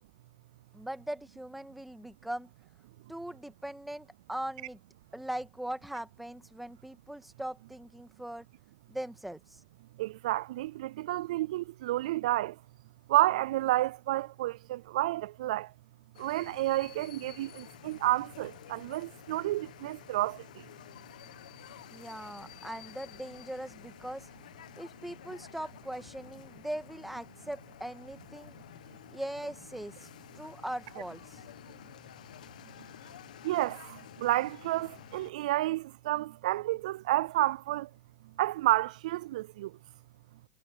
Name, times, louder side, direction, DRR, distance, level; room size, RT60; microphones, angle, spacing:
voice 1, 0.7-2.5 3.1-4.8 5.1-8.5 8.9-9.6 21.9-24.3 24.8-28.5 29.1-31.4, right 1 dB, 5° right, 1.7 m, -40 dB
voice 2, 10.0-12.5 13.1-15.7 16.2-20.4 33.4-37.9 38.4-39.7, right 16 dB, 70° right, 0.4 m, -30 dB
sound 1, 16.1-35.3, left 12 dB, 85° left, 1.6 m, -51 dB
hypercardioid pair, 120°, 4 cm